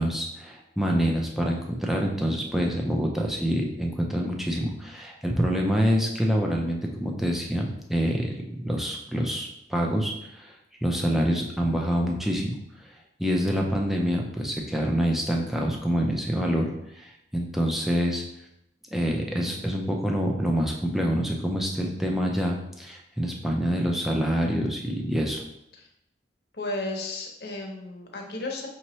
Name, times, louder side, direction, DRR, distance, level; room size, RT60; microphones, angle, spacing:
voice 1, 0.0-10.5 10.8-12.9 13.2-18.2 18.9-25.4, equal, ahead, 0 dB, 0.4 m, -26 dB
voice 2, 26.5-28.7, left 2 dB, 60° left, 1 dB, 0.8 m, -33 dB
5.4 x 2.9 x 3.0 m, 0.83 s
head